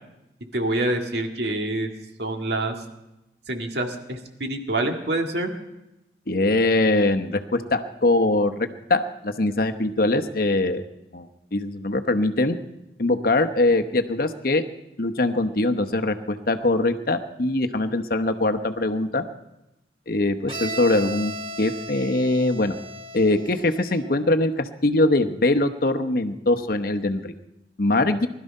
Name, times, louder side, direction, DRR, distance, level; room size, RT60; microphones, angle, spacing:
voice 1, 0.5-1.9 2.2-2.8 3.5-5.5, right 1 dB, 65° right, 3 dB, 1.9 m, -26 dB
voice 2, 6.3-10.8 11.1-12.6 13.0-14.6 15.0-19.2 20.1-21.3 21.6-22.8 23.1-27.3 27.8-28.3, left 2 dB, 55° left, 7 dB, 0.9 m, -22 dB
Bowed string instrument, 20.5-24.2, right 1 dB, 30° right, 1.5 m, -36 dB
20.0 x 12.5 x 5.4 m, 0.94 s
head